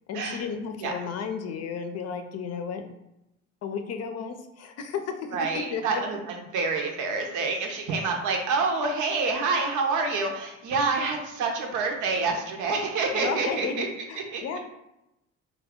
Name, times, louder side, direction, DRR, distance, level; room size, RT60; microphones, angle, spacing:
voice 1, 0.1-2.8 3.6-5.1 5.5-6.0 13.1-14.6, left 6 dB, 55° left, 7 dB, 0.5 m, -33 dB
voice 2, 5.3-6.2 6.5-13.9 14.3-14.4, right 4 dB, 80° right, 2 dB, 0.7 m, -27 dB
2.8 x 2.3 x 3.6 m, 0.90 s
cardioid pair, 95°, 30 cm